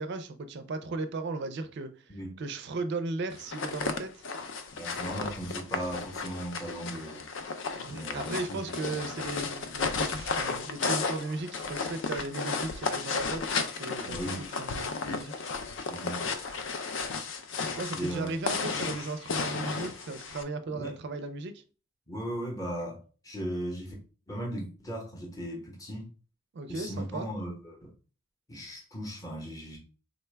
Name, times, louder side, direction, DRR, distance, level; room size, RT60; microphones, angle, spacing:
voice 1, 0.0-4.2 7.7-13.4 13.8-15.3 17.7-21.6 26.5-27.3, right 3 dB, 55° right, 0.4 m, -36 dB
voice 2, 2.1-2.4 4.7-7.2 7.9-9.1 14.0-14.5 15.9-16.3 17.9-18.3 20.7-21.0 22.1-23.0 23.2-23.9 24.3-26.1 26.7-27.9 28.5-29.8, right 1 dB, 15° left, 0.8 m, -37 dB
sound 1, 3.4-20.4, left 4 dB, 60° left, 0.4 m, -34 dB
3.8 x 2.2 x 3.2 m
head